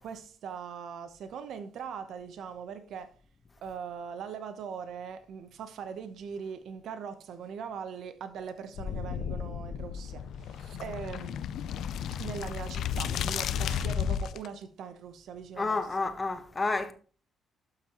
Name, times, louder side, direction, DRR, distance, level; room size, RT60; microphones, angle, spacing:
voice 1, 0.0-3.1 3.6-11.4 12.2-15.8, right 7 dB, 75° right, 0.9 m, -41 dB
sound 1, 8.8-14.5, left 8 dB, 75° left, 0.4 m, -33 dB
voice 2, 15.6-16.9, left 3 dB, 25° left, 1.2 m, -30 dB
12.0 x 5.9 x 3.0 m
cardioid pair, 90°, 0 cm